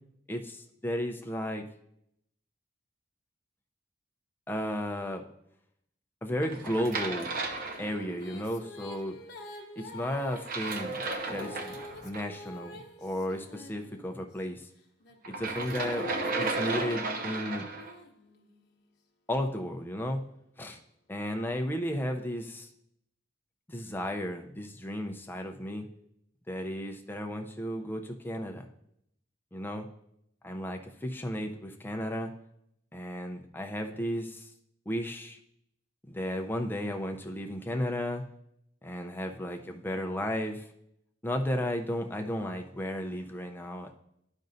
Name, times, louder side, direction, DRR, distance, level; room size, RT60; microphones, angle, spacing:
voice 1, 0.3-1.6 4.5-5.2 6.2-7.3 7.8-9.2 9.8-11.0 11.3-11.8 12.0-14.7 15.3-17.7 19.3-20.2 20.6-20.8 21.1-22.7 23.7-25.8 26.5-28.7 29.5-29.9 30.4-32.3 32.9-34.5 34.9-35.4 36.1-38.2 38.8-40.7 41.2-44.0, equal, 10° left, 3 dB, 0.6 m, -34 dB
sound 1, 6.4-8.4 10.3-12.2 15.2-17.9, right 3 dB, 50° right, 0.7 m, -34 dB
Female singing, 7.4-14.3 15.0-18.8, left 1 dB, 55° left, 1.0 m, -48 dB
12.0 x 5.3 x 2.6 m, 0.76 s
head